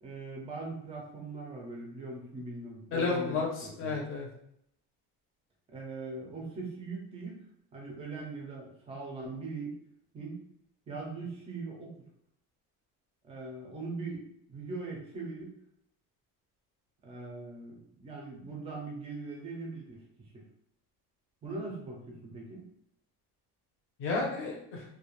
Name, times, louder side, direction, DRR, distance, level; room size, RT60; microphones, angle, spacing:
voice 1, 0.0-3.4 3.8-4.0 5.7-7.4 7.7-9.7 10.1-10.4 10.9-11.9 13.2-15.6 17.0-20.0 20.3-20.4 21.4-22.7, right 3 dB, 15° right, -1 dB, 0.4 m, -40 dB
voice 2, 2.9-4.3 24.0-24.8, left 4 dB, 35° left, 0 dB, 0.6 m, -32 dB
2.4 x 2.2 x 3.0 m, 0.73 s
cardioid pair, 175°, 37 cm